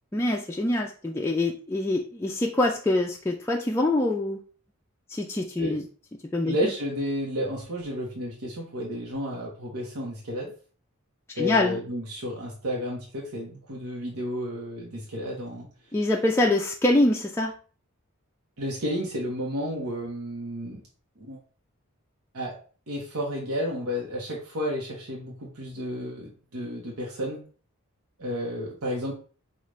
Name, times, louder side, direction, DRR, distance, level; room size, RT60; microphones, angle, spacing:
voice 1, 0.1-4.4 5.1-5.8 6.3-6.6 11.4-11.8 15.9-17.5, left 2 dB, 10° left, -1 dB, 0.3 m, -24 dB
voice 2, 6.4-10.5 11.3-15.7 18.6-20.8 21.2-21.4 22.3-22.5 22.9-27.4 28.2-29.1, equal, 85° right, -2 dB, 1.0 m, -32 dB
5.2 x 2.4 x 3.1 m, 0.39 s
head